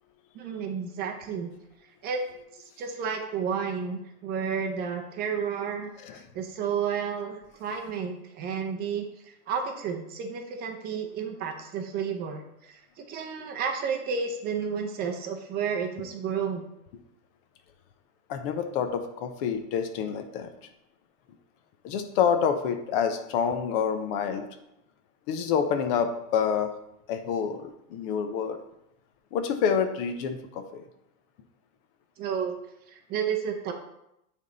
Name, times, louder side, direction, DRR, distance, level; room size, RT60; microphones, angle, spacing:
voice 1, 0.3-1.5 2.0-2.2 2.8-5.9 6.3-9.1 9.5-16.7 32.2-32.5 32.9-33.7, right 6 dB, 20° right, 4 dB, 0.6 m, -31 dB
voice 2, 18.3-20.5 21.8-24.5 25.3-26.7 27.1-28.6 29.3-30.8, left 7 dB, 40° left, 7 dB, 0.8 m, -27 dB
9.0 x 3.6 x 4.0 m, 0.82 s
hypercardioid pair, 140°, 46 cm